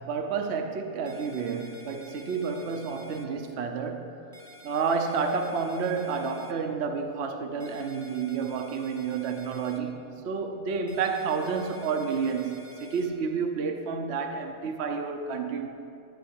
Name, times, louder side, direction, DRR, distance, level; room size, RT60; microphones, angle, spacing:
voice 1, 0.0-4.1 4.6-10.0 10.2-15.7, right 5 dB, 65° right, 5 dB, 1.0 m, -30 dB
sound 1, 1.1-3.3 4.3-6.5 7.6-9.8 10.9-13.1, equal, 15° right, 0.8 m, -51 dB
12.0 x 5.3 x 8.4 m, 2.8 s
omnidirectional pair, 1.3 m